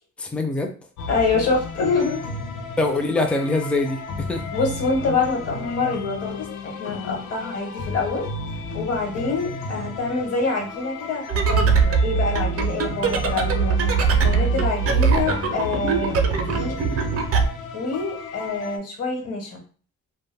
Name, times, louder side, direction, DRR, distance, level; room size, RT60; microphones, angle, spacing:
voice 1, 0.2-0.7 2.8-4.4 14.9-15.2, left 2 dB, 5° left, 4 dB, 0.4 m, -24 dB
sound 1, 1.0-18.8, left 3 dB, 90° left, 0.5 m, -33 dB
voice 2, 1.1-2.2 4.5-8.3 8.7-11.2 11.5-13.7 14.1-16.8 17.7-19.6, left 4 dB, 55° left, 1 dB, 1.1 m, -26 dB
sound 2, 11.3-17.5, right 5 dB, 50° right, 0.5 m, -21 dB
2.1 x 2.1 x 3.3 m, 0.40 s
cardioid pair, 90°, 30 cm